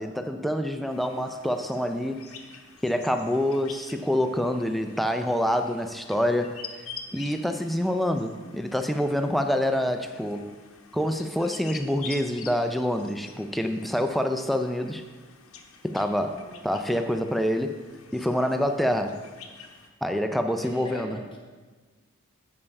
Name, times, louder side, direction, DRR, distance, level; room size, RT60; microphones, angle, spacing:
voice 1, 0.0-2.3 2.8-6.6 7.1-10.5 10.9-15.0 15.8-17.8 18.1-19.2 20.0-21.2, equal, ahead, 6 dB, 0.3 m, -26 dB
Australian Willy Wagtail, 0.9-19.9, left 5 dB, 65° left, 0.8 m, -47 dB
voice 2, 16.2-17.0 20.5-21.4, left 1 dB, 20° left, 0 dB, 1.1 m, -43 dB
8.1 x 5.5 x 5.3 m, 1.4 s
head